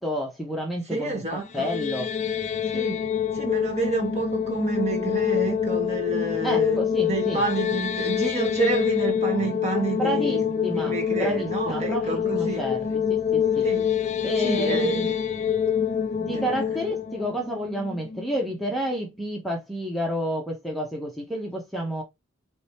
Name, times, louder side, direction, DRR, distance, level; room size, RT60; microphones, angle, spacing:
voice 1, 0.0-2.1 6.4-7.4 10.0-13.7 14.2-15.2 16.2-22.0, equal, ahead, 0.9 m, -30 dB
voice 2, 0.9-1.7 2.7-10.4 10.7-12.6 13.6-13.9 14.4-15.0 15.4-15.5 16.3-16.5, right 3 dB, 35° right, 1.6 m, -29 dB
sound 1, 1.4-18.5, left 8 dB, 35° left, 0.4 m, -26 dB
4.9 x 3.2 x 3.0 m
head